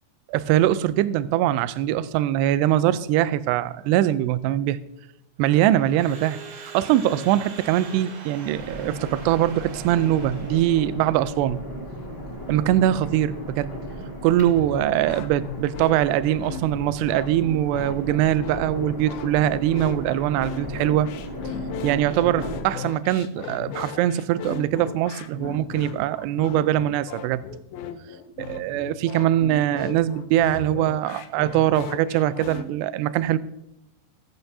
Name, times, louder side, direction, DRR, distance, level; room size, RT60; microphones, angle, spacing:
voice 1, 0.3-4.8 5.4-11.6 12.5-13.7 14.2-21.1 21.8-27.4 28.4-33.4, right 12 dB, 85° right, 15 dB, 2.5 m, -22 dB
Crowd / Alarm, 5.4-11.0, right 4 dB, 60° right, 3.1 m, -42 dB
sound 1, 8.5-22.6, equal, 20° left, 1.9 m, -36 dB
sound 2, 14.6-32.6, left 7 dB, 80° left, 2.3 m, -37 dB
21.5 x 7.9 x 2.7 m, 0.82 s
omnidirectional pair, 5.1 m